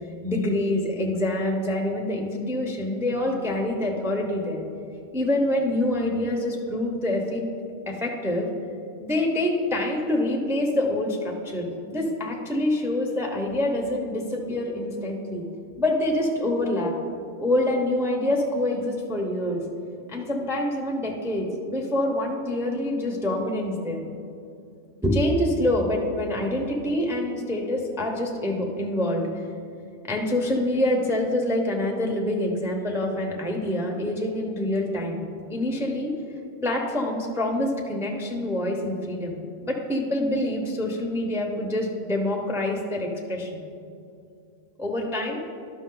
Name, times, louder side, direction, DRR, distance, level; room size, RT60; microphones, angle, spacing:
voice 1, 0.2-4.6 5.1-7.4 7.9-8.5 9.0-15.4 15.8-16.9 17.4-19.6 20.1-24.0 25.0-29.3 30.1-35.2 35.5-36.1 36.6-43.6 44.8-45.4, left 1 dB, 5° right, 0 dB, 0.7 m, -26 dB
11.5 x 6.0 x 3.8 m, 2.5 s
omnidirectional pair, 1.2 m